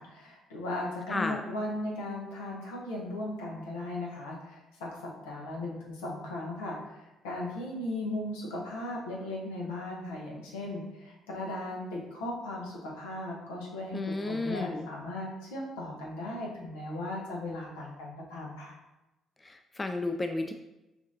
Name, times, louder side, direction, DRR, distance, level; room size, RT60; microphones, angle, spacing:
voice 1, 0.0-18.7, left 1 dB, 80° left, -2 dB, 0.9 m, -37 dB
voice 2, 1.1-1.4 13.9-14.9 19.4-20.5, left 2 dB, 25° left, 6 dB, 0.3 m, -32 dB
5.8 x 2.7 x 2.6 m, 0.99 s
hypercardioid pair, 50°, 0 cm